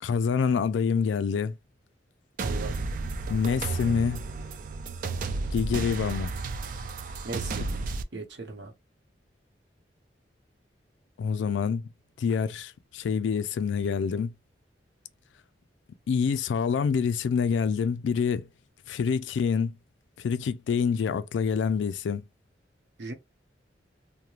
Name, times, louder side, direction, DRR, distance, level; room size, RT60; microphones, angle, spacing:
voice 1, 0.0-1.5 3.3-4.2 5.5-6.3 11.2-11.9 12.2-14.3 16.1-18.5 18.9-19.8 20.2-22.2, left 6 dB, 90° left, 0.3 m, -26 dB
sound 1, 2.4-8.0, right 3 dB, 45° right, 0.3 m, -32 dB
voice 2, 2.4-2.8 7.2-7.6 8.1-8.7 23.0-23.1, right 3 dB, 70° right, 0.8 m, -37 dB
2.4 x 2.1 x 2.9 m
head